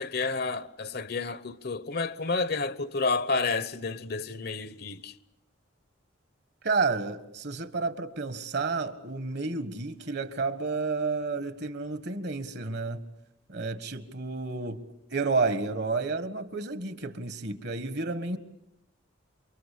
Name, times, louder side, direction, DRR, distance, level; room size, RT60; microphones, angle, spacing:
voice 1, 0.0-5.1, left 4 dB, 50° left, 1.0 m, -30 dB
voice 2, 6.6-13.0 13.5-14.8 15.1-18.4, right 4 dB, 55° right, 1.7 m, -31 dB
28.5 x 24.5 x 8.6 m
head